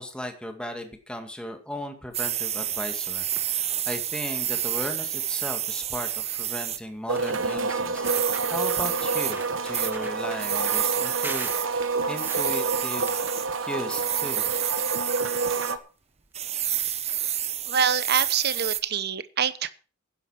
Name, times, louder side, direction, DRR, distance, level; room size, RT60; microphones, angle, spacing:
voice 1, 0.0-8.1 8.5-13.2 13.6-14.5, equal, 5° left, 5 dB, 2.1 m, -36 dB
sound 1, 2.1-6.8 8.0-9.3 9.7-9.9 10.4-11.7 12.2-13.5 13.9-15.7 16.3-18.8, right 11 dB, 35° right, 0.8 m, -29 dB
sound 2, 3.2-3.6 4.1-4.2 4.4-4.7 5.9-6.0 6.6-6.7 7.1-8.6 9.0-10.7 11.2-14.0 14.3-15.4 16.3-16.4 16.7-16.8 17.0-17.1, right 2 dB, 10° right, 1.5 m, -43 dB
sound 3, 7.1-15.8, right 4 dB, 75° right, 1.3 m, -28 dB
voice 2, 17.7-19.7, right 7 dB, 55° right, 15 dB, 1.0 m, -25 dB
11.5 x 10.5 x 5.8 m, 0.36 s
head